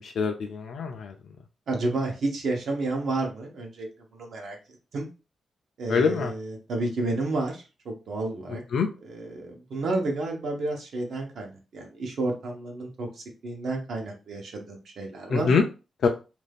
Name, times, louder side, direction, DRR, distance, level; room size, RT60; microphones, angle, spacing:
voice 1, 0.0-1.4 5.9-6.3 8.7-8.9 15.3-15.6 16.0-16.1, left 5 dB, 65° left, 3 dB, 0.3 m, -24 dB
voice 2, 1.7-4.6 4.9-5.1 5.8-8.6 9.1-15.5, right 2 dB, 60° right, 1 dB, 0.8 m, -31 dB
2.6 x 2.3 x 3.4 m, 0.31 s
wide cardioid pair, 180°, 0 cm